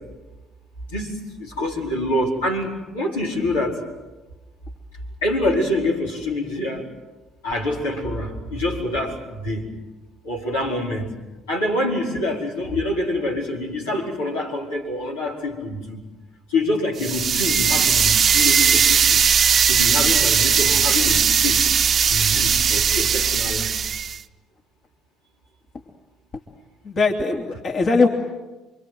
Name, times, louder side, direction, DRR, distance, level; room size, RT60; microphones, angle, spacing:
voice 1, 1.4-3.8 5.2-6.9 7.4-9.7 10.2-11.1 11.5-16.0 16.5-19.2 19.7-21.6 22.1-23.7, left 1 dB, 85° left, -3 dB, 4.8 m, -26 dB
sound 1, 17.0-24.2, right 7 dB, 45° right, 0.9 m, -18 dB
voice 2, 26.8-28.1, left 3 dB, 45° left, 2 dB, 3.1 m, -20 dB
28.5 x 24.5 x 7.9 m, 1.1 s
hypercardioid pair, 55°, 0 cm